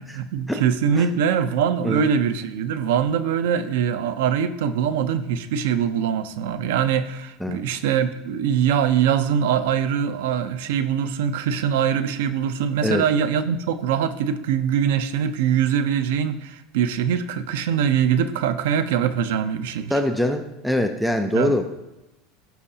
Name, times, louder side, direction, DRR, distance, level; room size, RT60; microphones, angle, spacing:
voice 1, 0.0-19.9 21.3-21.6, right 8 dB, 85° right, 12 dB, 0.6 m, -23 dB
voice 2, 19.9-21.6, left 1 dB, ahead, 5 dB, 0.5 m, -23 dB
15.0 x 5.8 x 2.8 m, 0.97 s
supercardioid pair, 165°, 0 cm